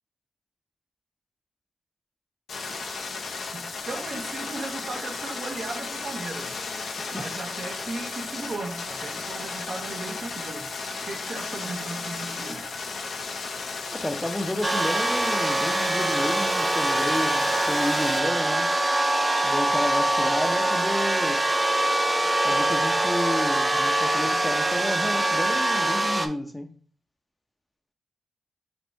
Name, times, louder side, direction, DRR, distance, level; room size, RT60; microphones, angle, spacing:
sound 1, 2.5-18.2, left 4 dB, 80° left, 0.8 m, -34 dB
voice 1, 3.5-6.6 7.1-10.7 11.0-12.7 24.2-24.3, right 3 dB, 65° right, 0.9 m, -36 dB
voice 2, 13.9-18.7 19.4-21.4 22.4-26.7, left 1 dB, 15° left, 0.7 m, -31 dB
sound 2, 14.6-26.3, right 1 dB, 25° right, 0.6 m, -24 dB
4.3 x 2.5 x 4.5 m
cardioid pair, 55°, 0 cm